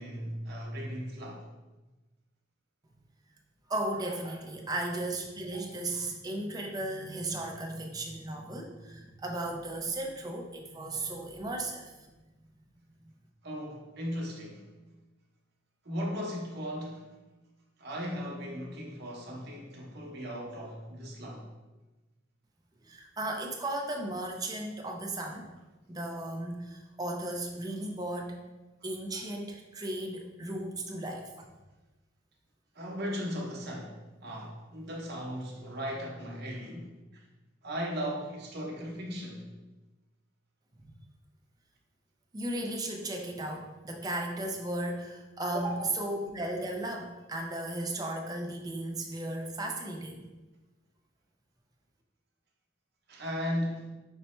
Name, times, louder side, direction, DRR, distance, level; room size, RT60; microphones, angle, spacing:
voice 1, 0.0-1.5 13.4-14.7 15.8-17.1 17.8-21.4 32.7-34.0 34.2-36.9 37.6-39.5 53.1-53.9, equal, 60° right, -2 dB, 0.9 m, -37 dB
voice 2, 3.7-11.9 22.8-25.5 25.9-28.4 28.8-31.3 40.8-40.9 42.3-50.3, right 1 dB, 20° right, 1 dB, 0.5 m, -35 dB
5.4 x 2.1 x 4.3 m, 1.1 s
head